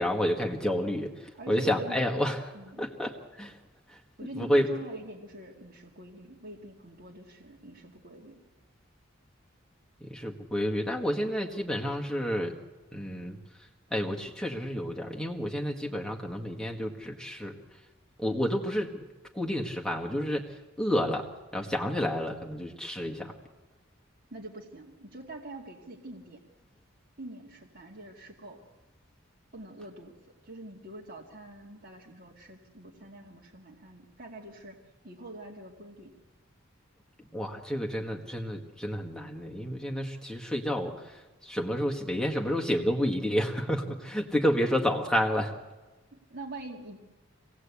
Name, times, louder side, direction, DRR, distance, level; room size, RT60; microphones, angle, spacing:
voice 1, 0.0-3.6 3.9-4.0 4.3-4.7 10.0-12.5 12.9-13.4 13.9-17.5 18.2-19.0 19.3-20.5 20.8-23.3 37.3-45.6, equal, 5° left, 0 dB, 1.6 m, -30 dB
voice 2, 1.3-2.0 2.5-2.9 4.2-8.4 24.3-26.4 27.2-28.6 29.5-30.2 30.4-34.8 35.0-36.1 46.1-47.0, right 2 dB, 45° right, -2 dB, 2.4 m, -44 dB
26.0 x 18.5 x 8.5 m, 1.2 s
head